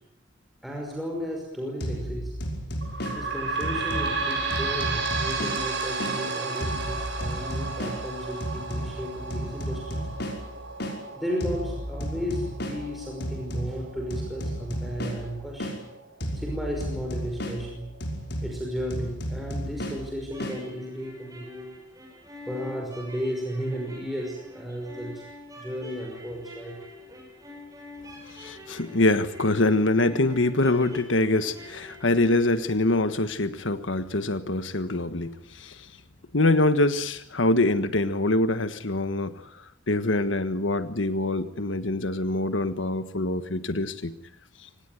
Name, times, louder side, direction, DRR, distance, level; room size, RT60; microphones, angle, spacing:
voice 1, 0.6-2.4 3.1-10.1 11.2-15.9 16.3-17.9 18.4-21.8 22.5-25.3 25.5-26.8, equal, ahead, -1 dB, 5.6 m, -34 dB
sound 1, 1.8-6.2 6.6-11.0 11.4-15.8 16.2-20.6, equal, 60° left, 5.9 m, -34 dB
sound 2, 2.8-16.0 16.5-16.6 16.9-17.0 17.8-17.9, right 4 dB, 65° right, 7.7 m, -33 dB
sound 3, 20.2-32.5, left 1 dB, 20° right, 7.6 m, -45 dB
voice 2, 28.3-35.9 36.3-39.4 39.9-44.1, left 2 dB, 75° left, 10 dB, 1.5 m, -24 dB
25.5 x 19.0 x 9.4 m, 0.74 s
head